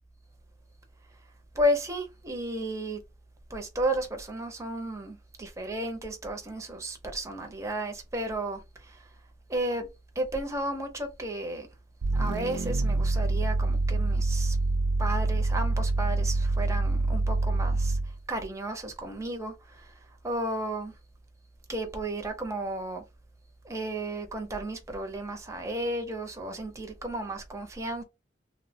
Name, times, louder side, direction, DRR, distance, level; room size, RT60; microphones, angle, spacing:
voice 1, 1.5-3.0 3.5-9.1 9.5-9.9 10.2-11.7 12.1-14.6 15.0-19.9 20.2-20.9 21.7-23.0 23.6-28.0, right 1 dB, 15° right, 0.5 m, -33 dB
sound 1, 12.0-18.2, right 2 dB, 65° right, 0.3 m, -26 dB
3.1 x 2.0 x 2.6 m
head